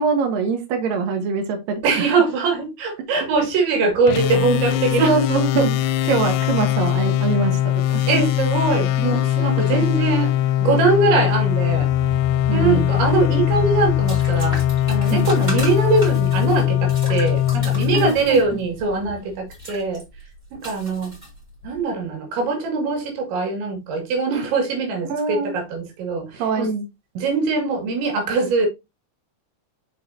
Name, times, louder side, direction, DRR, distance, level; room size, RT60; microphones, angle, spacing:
voice 1, 0.0-2.1 5.0-5.8 6.0-7.6 7.9-8.0 9.4-9.8 12.5-12.9 15.1-15.3 17.9-18.6 25.1-25.5 26.4-26.8, right 5 dB, 65° right, 2.7 m, -23 dB
voice 2, 1.8-5.2 8.1-10.3 10.6-11.9 12.5-14.6 14.9-20.0 20.5-21.1 21.6-26.7 27.2-28.7, right 4 dB, 85° right, 4.5 m, -22 dB
sound 1, 4.1-18.6, left 12 dB, 90° left, 2.9 m, -21 dB
sound 2, 11.3-19.1 19.5-19.7, left 4 dB, 45° right, 4.1 m, -34 dB
sound 3, 13.9-21.8, equal, 15° right, 2.1 m, -37 dB
8.2 x 5.5 x 2.8 m
omnidirectional pair, 5.1 m